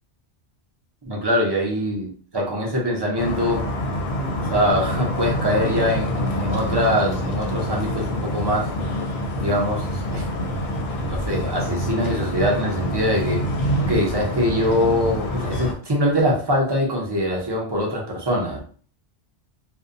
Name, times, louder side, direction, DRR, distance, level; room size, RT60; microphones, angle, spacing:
voice 1, 1.0-3.7 4.4-8.7 9.4-10.3 11.1-13.4 13.8-18.6, equal, 30° right, -2 dB, 0.5 m, -23 dB
sound 1, 3.2-15.7, equal, 70° left, 0.8 m, -26 dB
2.5 x 2.1 x 2.5 m, 0.43 s
omnidirectional pair, 1.2 m